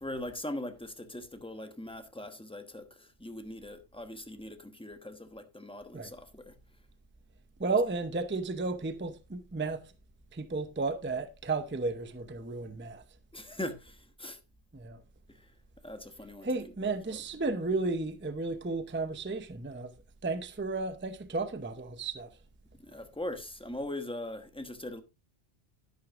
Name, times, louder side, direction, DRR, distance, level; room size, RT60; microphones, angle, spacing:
voice 1, 0.0-6.5 13.3-14.4 15.3-15.5 15.8-16.5 16.8-17.2 22.8-25.0, left 1 dB, 5° left, 1.0 m, -41 dB
voice 2, 7.6-9.9 10.3-13.0 14.7-15.0 16.4-19.9 20.2-22.3, right 3 dB, 10° right, 0.6 m, -33 dB
12.0 x 11.0 x 2.5 m
omnidirectional pair, 1.3 m